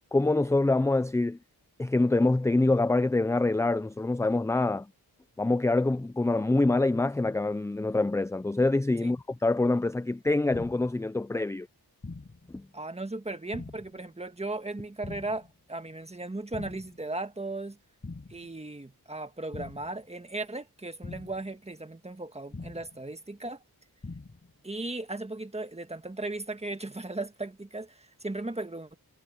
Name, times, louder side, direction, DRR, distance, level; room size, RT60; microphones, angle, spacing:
voice 1, 0.1-1.4 1.8-4.9 5.4-11.7 12.5-12.7, left 2 dB, 10° left, 0.4 m, -25 dB
sound 1, 10.5-11.0 12.0-12.5 13.5-14.0 15.0-15.5 16.5-17.0 18.0-18.5 19.5-20.0 21.0-21.5 22.5-23.0 24.0-24.5, left 3 dB, 30° left, 5.8 m, -42 dB
voice 2, 12.7-17.8 18.3-23.6 24.6-29.0, right 2 dB, 15° right, 1.6 m, -37 dB
wide cardioid pair, 110°, 38 cm